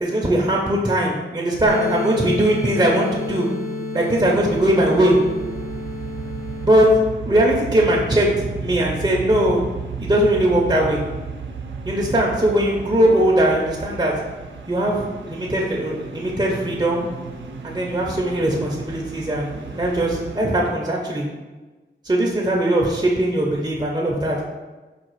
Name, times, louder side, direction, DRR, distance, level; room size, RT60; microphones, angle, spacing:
voice 1, 0.0-3.5 3.9-5.2 6.6-6.9 7.2-9.6 10.0-11.0 11.8-14.1 14.7-17.1 17.6-21.3 22.0-24.4, right 1 dB, 25° right, -2 dB, 0.7 m, -20 dB
sound 1, 1.7-6.7, left 2 dB, 50° left, 0.6 m, -29 dB
sound 2, 4.2-20.4, right 4 dB, 75° right, 0.5 m, -34 dB
4.8 x 2.4 x 4.6 m, 1.2 s
wide cardioid pair, 50°, 19 cm